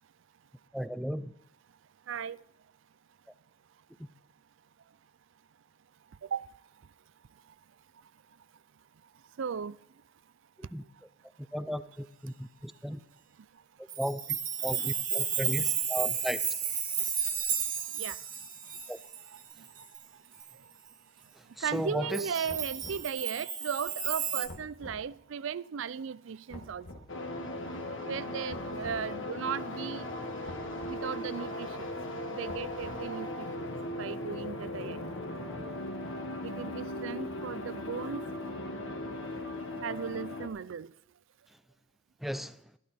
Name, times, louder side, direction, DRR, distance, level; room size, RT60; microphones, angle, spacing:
voice 1, 0.7-1.3 10.7-10.8 11.5-13.0 14.0-16.4 18.9-19.0 21.6-22.4 42.2-42.6, equal, ahead, 0.5 m, -35 dB
voice 2, 2.1-2.4 6.2-6.5 9.4-9.8 17.8-18.2 18.7-18.8 19.3-19.9 20.5-20.6 21.6-26.9 28.1-30.1 30.9-32.0 32.3-33.7 34.0-35.0 36.4-38.3 39.8-40.9, right 6 dB, 65° right, 0.4 m, -36 dB
Chime, 13.9-20.0 20.4-20.5 22.1-24.5, right 8 dB, 40° right, 1.7 m, -33 dB
sound 1, 22.5-23.1 24.5-25.0 26.5-27.1 28.5-29.1 30.4-31.0 32.5-33.2, left 1 dB, 85° left, 1.6 m, -47 dB
sound 2, 27.1-40.5, left 1 dB, 65° left, 1.7 m, -38 dB
13.5 x 12.5 x 4.3 m
head